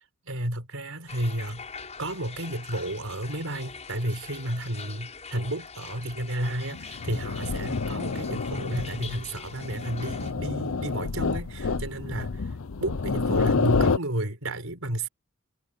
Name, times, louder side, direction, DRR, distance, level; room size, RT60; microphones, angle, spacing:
voice 1, 0.2-1.7 2.0-12.5 12.8-15.1, right 1 dB, 75° right, 5.1 m, -32 dB
sound 1, 1.1-10.3, left 5 dB, 35° left, 7.5 m, -43 dB
Bufadora Punta Arenas, 6.7-14.0, left 4 dB, 70° left, 0.7 m, -28 dB
head